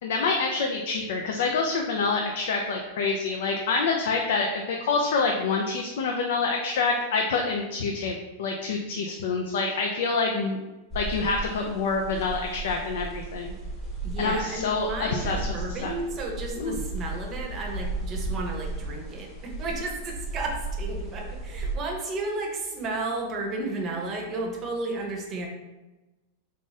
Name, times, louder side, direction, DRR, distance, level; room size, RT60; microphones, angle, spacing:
voice 1, 0.0-10.6 10.9-13.5 14.2-16.0 16.6-16.8, left 4 dB, 70° left, 2 dB, 0.4 m, -27 dB
sound 1, 10.9-21.7, right 2 dB, 10° left, 1.1 m, -35 dB
voice 2, 14.0-25.5, right 2 dB, 25° right, 1 dB, 0.7 m, -33 dB
3.6 x 2.5 x 4.0 m, 1.1 s
supercardioid pair, 150°, 0 cm